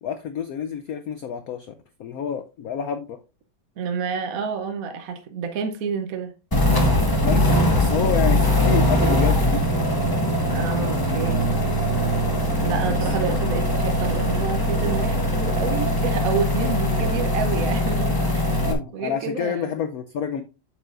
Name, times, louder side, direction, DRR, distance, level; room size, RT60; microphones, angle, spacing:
voice 1, 0.0-1.7 2.0-3.2 7.2-9.9 12.9-13.3 13.8-14.0 18.6-20.4, left 8 dB, 70° left, 0.8 m, -29 dB
voice 2, 3.8-6.3 10.5-11.5 12.6-18.7 18.9-19.7, right 5 dB, 60° right, 1.0 m, -29 dB
sound 1, 6.5-18.7, equal, 15° left, 1.1 m, -21 dB
8.2 x 7.4 x 2.5 m
omnidirectional pair, 2.1 m